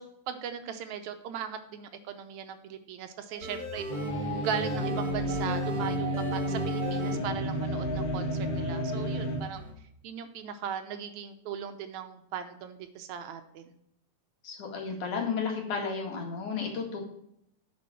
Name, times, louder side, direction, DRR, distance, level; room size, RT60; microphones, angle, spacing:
voice 1, 0.0-3.8 4.4-9.6 10.0-13.7, right 8 dB, 75° right, 8 dB, 2.0 m, -38 dB
sound 1, 3.3-8.6 8.9-9.7, right 1 dB, 45° right, 3.6 m, -40 dB
sound 2, 3.9-9.4, equal, 50° left, 2.9 m, -31 dB
voice 2, 14.4-17.0, left 5 dB, 70° left, 1 dB, 3.5 m, -33 dB
10.0 x 6.2 x 6.1 m, 0.74 s
omnidirectional pair, 3.6 m